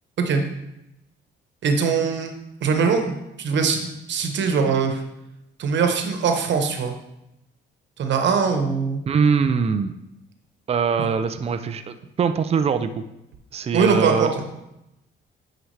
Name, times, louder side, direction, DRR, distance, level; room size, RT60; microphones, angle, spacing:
voice 1, 1.6-2.3 2.6-5.0 5.6-6.9 8.0-9.0 13.7-14.4, right 5 dB, 65° right, 5 dB, 1.1 m, -22 dB
voice 2, 9.1-9.9 10.7-12.9 13.5-14.3, right 6 dB, 30° right, 9 dB, 0.5 m, -22 dB
9.3 x 4.9 x 3.3 m, 0.89 s
cardioid pair, 90°, 20 cm